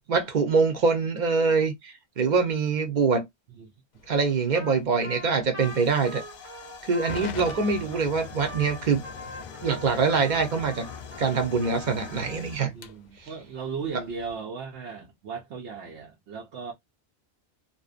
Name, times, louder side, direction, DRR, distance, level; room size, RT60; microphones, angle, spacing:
voice 1, 0.1-3.2 4.1-6.2 6.8-9.0 9.6-10.9 11.2-12.7, right 4 dB, 50° right, 0.7 m, -24 dB
Hiss / Fire / Tick, 3.9-14.3, left 6 dB, 55° left, 0.5 m, -43 dB
Trumpet, 4.5-4.8 5.0-12.4, equal, 15° right, 0.7 m, -42 dB
voice 2, 7.2-7.9 12.7-16.7, right 5 dB, 85° right, 0.9 m, -37 dB
2.5 x 2.1 x 2.4 m
omnidirectional pair, 1.1 m